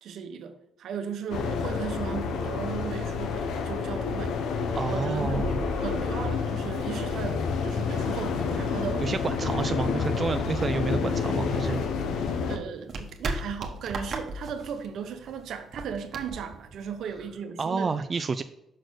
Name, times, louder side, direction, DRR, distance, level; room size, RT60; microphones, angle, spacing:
voice 1, 0.0-4.4 4.9-9.1 12.5-18.0, right 7 dB, 75° right, 0.9 m, -36 dB
sound 1, 1.3-12.6, left 5 dB, 80° left, 0.8 m, -29 dB
voice 2, 4.7-5.6 9.0-11.8 17.6-18.4, right 4 dB, 35° right, 0.4 m, -29 dB
sound 2, 5.2-10.3, left 1 dB, 15° left, 2.0 m, -41 dB
sound 3, 11.4-17.4, right 2 dB, 50° right, 1.2 m, -38 dB
6.4 x 4.2 x 6.4 m
cardioid pair, 90°, 0 cm